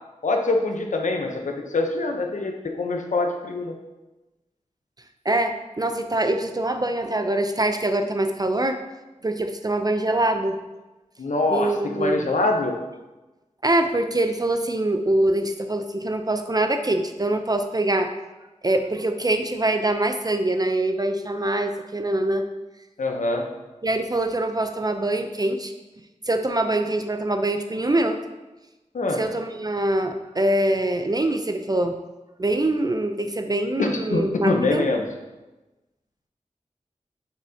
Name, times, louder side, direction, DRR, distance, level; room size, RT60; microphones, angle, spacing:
voice 1, 0.2-3.8 11.2-12.8 23.0-23.4 28.9-29.2 33.8-35.0, left 2 dB, 85° left, 3 dB, 0.8 m, -24 dB
voice 2, 5.2-8.8 9.2-10.6 11.5-12.3 13.6-18.1 18.6-22.5 23.8-25.7 26.3-28.2 29.1-31.9 32.4-34.8, right 1 dB, 30° right, 6 dB, 0.5 m, -24 dB
6.5 x 6.3 x 2.8 m, 1.1 s
cardioid pair, 45°, 13 cm